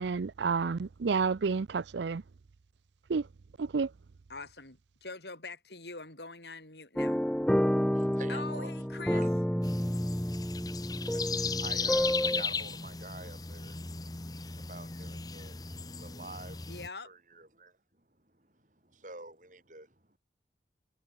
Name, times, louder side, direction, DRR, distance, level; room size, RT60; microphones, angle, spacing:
voice 1, 0.0-2.2 3.1-3.3 3.6-3.9, right 5 dB, 80° right, 0.5 m, -30 dB
voice 2, 4.3-7.2 8.3-9.2 16.7-17.1, left 3 dB, 70° left, 7.5 m, -44 dB
sound 1, 7.0-12.4, equal, 5° left, 0.5 m, -30 dB
voice 3, 7.9-8.7 9.1-9.4 9.8-9.9 10.2-13.8 14.7-15.6 16.0-16.7 17.0-20.2, right 2 dB, 45° right, 6.3 m, -49 dB
sound 2, 9.6-16.9, left 5 dB, 20° left, 0.9 m, -37 dB
head